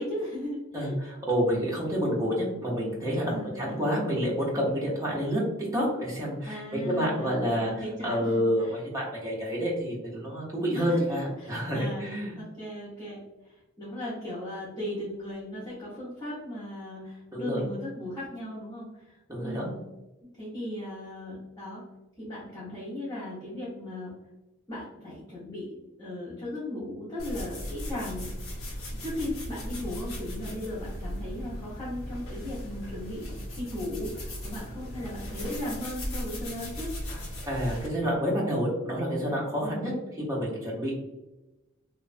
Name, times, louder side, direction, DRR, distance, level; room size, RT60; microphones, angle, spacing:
voice 1, 0.0-0.9 3.3-3.8 6.4-8.7 10.7-11.0 11.4-12.1 12.4-19.8 20.3-21.8 22.2-24.1 24.7-36.9 39.6-40.0, left 1 dB, 20° left, -10 dB, 0.8 m, -37 dB
voice 2, 0.7-5.4 5.7-7.7 8.0-12.4 17.3-17.6 19.3-19.7 37.4-39.9 40.2-40.9, equal, 15° right, -5 dB, 0.7 m, -28 dB
sound 1, 27.2-37.9, equal, 75° left, 0.7 m, -37 dB
2.9 x 2.1 x 2.5 m, 1.0 s
head